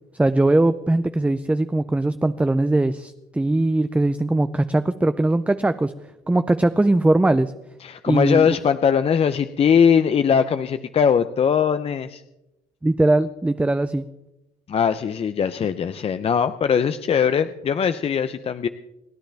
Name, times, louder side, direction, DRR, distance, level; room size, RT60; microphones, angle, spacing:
voice 1, 0.2-5.9 6.3-7.5 8.1-8.6 12.8-14.1, right 2 dB, 10° right, 11 dB, 0.5 m, -20 dB
voice 2, 7.8-12.2 14.7-18.7, left 7 dB, 35° left, 11 dB, 0.6 m, -20 dB
29.5 x 10.0 x 3.4 m, 0.93 s
cardioid pair, 110°, 17 cm